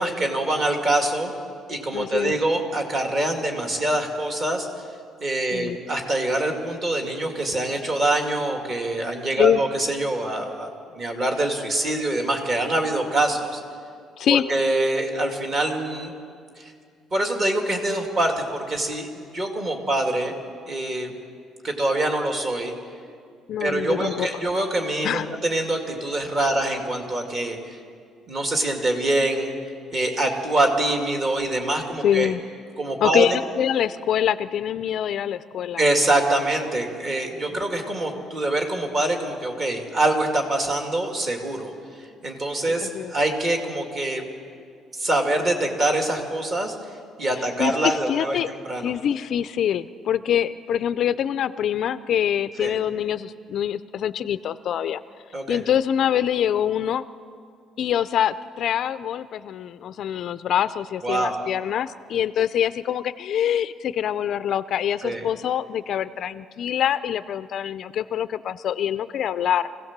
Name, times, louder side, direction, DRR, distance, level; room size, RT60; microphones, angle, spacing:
voice 1, 0.0-1.3 1.7-4.7 5.2-10.7 11.0-13.6 14.3-16.1 16.6-16.7 17.1-20.4 20.7-21.1 21.6-22.7 23.6-27.8 28.3-29.6 29.9-32.3 32.8-33.4 35.8-41.7 42.2-44.3 44.9-46.7 47.2-49.0 52.6-52.7 55.3-55.6 61.0-61.4 65.0-65.2, right 1 dB, 30° right, 3 dB, 2.3 m, -24 dB
voice 2, 1.9-2.3 5.5-5.8 9.4-9.6 14.2-14.5 23.5-24.3 25.0-25.3 26.4-26.5 32.0-32.4 33.0-35.8 37.5-37.6 42.7-43.1 47.6-48.5 48.8-55.0 55.5-57.0 57.8-69.7, left 10 dB, 45° left, 14 dB, 0.4 m, -24 dB
25.0 x 16.5 x 7.4 m, 2.2 s
cardioid pair, 175°, 0 cm